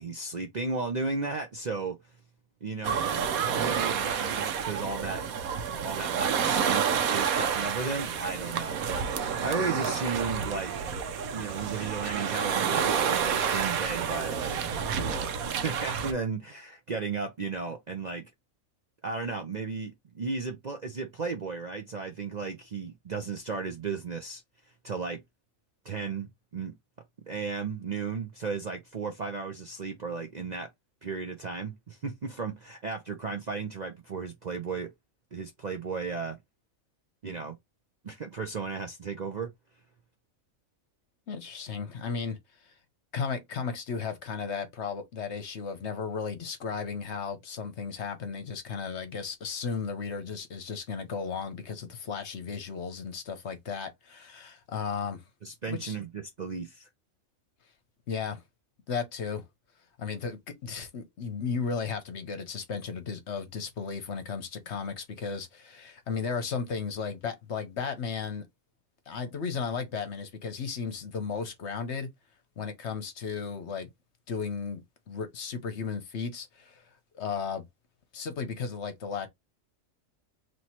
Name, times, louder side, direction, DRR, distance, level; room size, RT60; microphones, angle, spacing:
voice 1, 0.0-2.0 2.6-3.0 3.5-5.2 5.8-10.7 11.3-14.6 14.9-15.3 15.6-18.3 19.0-24.4 24.8-25.2 25.8-26.3 26.5-26.7 27.3-30.7 31.0-34.9 35.3-36.4 37.2-37.6 38.0-39.5 55.4-56.9, right 4 dB, 45° right, 0.6 m, -34 dB
sound 1, 2.8-16.1, right 7 dB, 85° right, 1.2 m, -29 dB
voice 2, 41.3-42.4 42.6-42.7 43.1-55.2 55.7-56.0 58.1-58.4 58.9-59.4 60.0-68.4 69.1-72.1 72.6-73.9 74.3-76.8 77.1-77.6 78.1-79.3, left 5 dB, 55° left, 1.1 m, -35 dB
3.1 x 2.9 x 4.3 m
omnidirectional pair, 1.4 m